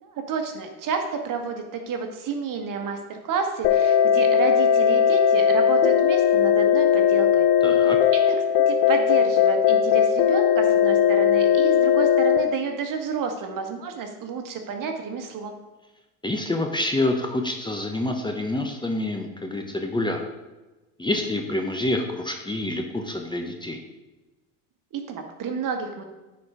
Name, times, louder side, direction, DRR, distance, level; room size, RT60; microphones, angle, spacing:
voice 1, 0.0-7.5 8.1-8.3 8.7-15.5 24.9-26.0, right 5 dB, 45° right, 4 dB, 1.6 m, -30 dB
sound 1, 3.6-12.4, left 8 dB, 55° left, 1.0 m, -18 dB
voice 2, 7.6-8.0 16.2-20.2 21.0-23.8, left 1 dB, 10° left, 3 dB, 1.0 m, -27 dB
9.5 x 4.7 x 5.0 m, 1.1 s
hypercardioid pair, 80°, 43 cm